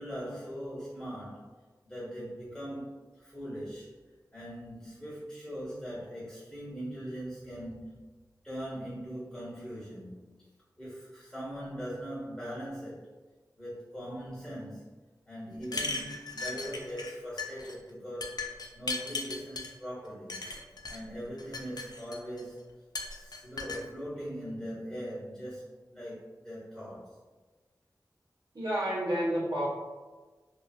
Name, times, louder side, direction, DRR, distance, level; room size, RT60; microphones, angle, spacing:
voice 1, 0.0-1.5 1.8-3.9 4.3-8.0 8.4-10.5 10.8-13.1 13.6-14.9 15.3-18.4 18.7-20.4 20.9-22.7 23.0-27.2, equal, 10° left, -8 dB, 1.2 m, -41 dB
sound 1, 15.6-17.1 17.4-17.7 18.2-19.7 20.3-21.0 21.4-22.4 22.9-23.8, left 3 dB, 65° left, 0.4 m, -37 dB
voice 2, 28.5-29.7, equal, 65° right, -6 dB, 0.9 m, -30 dB
2.7 x 2.6 x 2.4 m, 1.3 s
cardioid pair, 40°, 7 cm